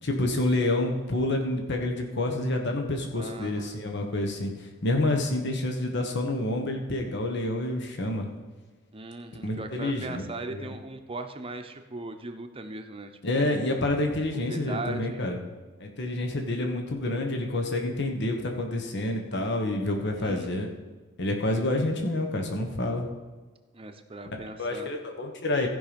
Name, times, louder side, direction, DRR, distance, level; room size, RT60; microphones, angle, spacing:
voice 1, 0.0-8.3 9.4-10.7 13.2-15.4 15.8-20.7 21.2-23.1 24.6-25.7, left 1 dB, 60° left, 3 dB, 1.4 m, -28 dB
voice 2, 3.2-3.8 8.9-13.5 14.4-15.3 20.2-20.7 23.7-24.9, right 2 dB, 30° right, 6 dB, 0.8 m, -39 dB
14.5 x 5.6 x 5.2 m, 1.3 s
head